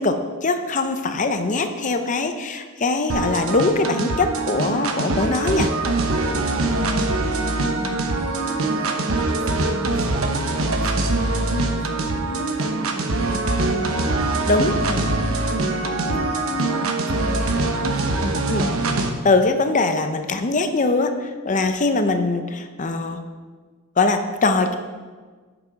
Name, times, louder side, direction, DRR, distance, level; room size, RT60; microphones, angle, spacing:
voice 1, 0.0-5.7 14.5-15.0 18.5-18.7 19.2-23.2 24.0-24.8, left 3 dB, 40° left, 7 dB, 0.7 m, -22 dB
sound 1, 3.1-19.1, right 2 dB, 90° right, 1.0 m, -23 dB
voice 2, 6.7-14.4 14.9-18.1, equal, 60° right, 4 dB, 1.3 m, -36 dB
9.4 x 6.9 x 5.2 m, 1.5 s
head